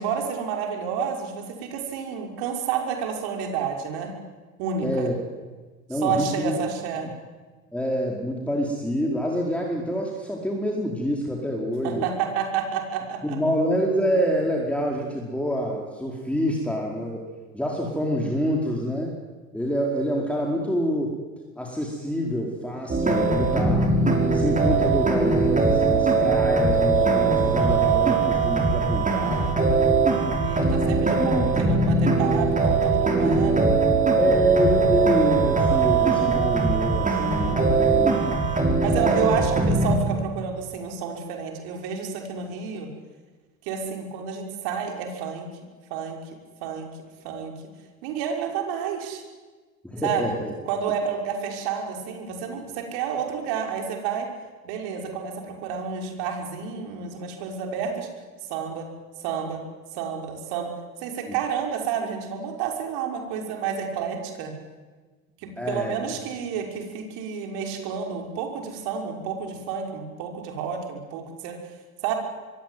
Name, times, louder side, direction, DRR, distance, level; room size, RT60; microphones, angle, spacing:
voice 1, 0.0-4.1 4.6-5.1 5.9-7.1 11.8-13.4 30.4-33.7 38.2-38.4 38.8-42.9 43.6-45.5 45.9-46.2 46.6-46.9 47.2-47.5 48.0-49.2 50.0-50.3 50.7-54.3 54.6-58.1 58.5-58.9 59.2-59.6 59.9-60.7 61.0-64.5 65.4-71.6 72.0-72.1, right 7 dB, 60° right, 2 dB, 6.2 m, -30 dB
voice 2, 4.8-5.1 5.9-6.5 7.7-12.1 13.2-17.3 17.5-19.1 19.5-21.1 21.6-23.9 24.3-29.5 31.2-31.5 33.2-33.4 34.2-38.3 39.0-39.3 49.8-50.5 61.3-61.4 65.6-66.2, equal, 5° left, -1 dB, 4.9 m, -27 dB
sound 1, 22.9-40.0, right 4 dB, 20° right, 6.3 m, -21 dB
25.5 x 22.5 x 9.6 m, 1.4 s
hypercardioid pair, 75°, 43 cm